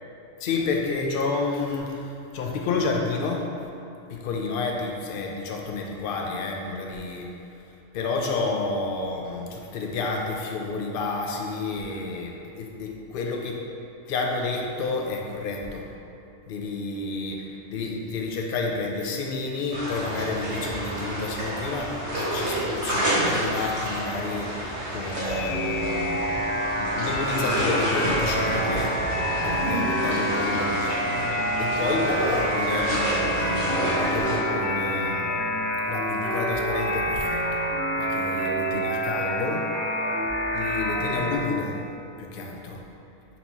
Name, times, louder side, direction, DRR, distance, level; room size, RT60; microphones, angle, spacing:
voice 1, 0.4-3.5 4.1-7.3 7.9-13.6 14.1-15.9 16.5-29.0 29.4-31.3 31.6-35.3 35.8-37.6 38.0-39.7 40.5-41.8 42.2-42.8, left 3 dB, 65° left, 1 dB, 0.5 m, -30 dB
sound 1, 19.7-34.4, right 1 dB, 55° right, 1.4 m, -29 dB
sound 2, 25.0-41.4, equal, 15° right, 0.7 m, -27 dB
4.3 x 2.7 x 4.4 m, 2.7 s
omnidirectional pair, 1.4 m